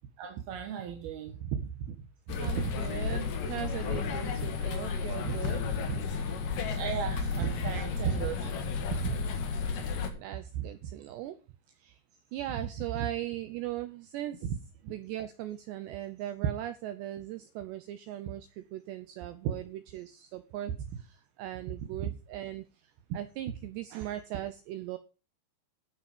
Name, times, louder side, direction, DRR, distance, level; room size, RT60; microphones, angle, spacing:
voice 1, 0.2-2.0 2.5-3.2 5.2-5.4 5.9-6.0 6.8-8.5 9.0-9.2 10.5-10.7 22.0-22.1, right 8 dB, 65° right, 2.8 m, -35 dB
sound 1, 2.3-10.1, left 5 dB, 55° left, 2.6 m, -32 dB
voice 2, 2.4-5.6 10.1-11.4 11.8-12.0 12.3-14.5 14.9-25.0, right 13 dB, 85° right, 2.4 m, -39 dB
15.0 x 8.4 x 5.2 m
omnidirectional pair, 6.0 m